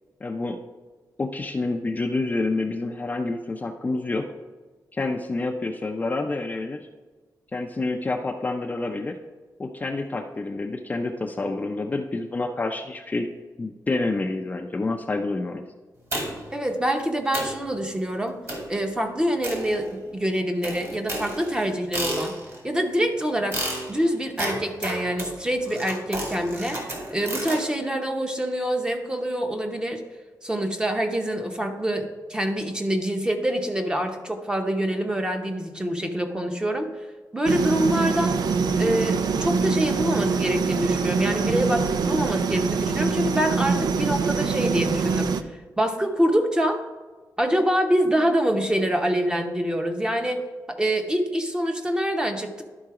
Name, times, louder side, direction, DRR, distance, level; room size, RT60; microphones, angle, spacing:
voice 1, 0.2-0.6 1.2-4.3 4.9-6.8 7.5-9.2 9.6-13.3 13.6-15.6, left 3 dB, 25° left, 3 dB, 0.5 m, -28 dB
sound 1, 16.1-16.6 17.0-17.1 17.3-17.6 18.5-18.8 19.4-20.2 20.6-22.6 23.5-27.6, right 1 dB, 45° right, 2.1 m, -32 dB
voice 2, 16.5-18.3 18.7-22.3 22.6-23.6 23.9-30.0 30.4-36.9 37.3-38.4 38.8-45.4 45.8-46.8 47.4-50.4 50.7-52.6, equal, 10° right, 4 dB, 0.8 m, -25 dB
sound 2, 37.5-45.4, right 5 dB, 75° right, 0.4 m, -24 dB
11.5 x 3.9 x 4.8 m, 1.3 s
wide cardioid pair, 155°, 7 cm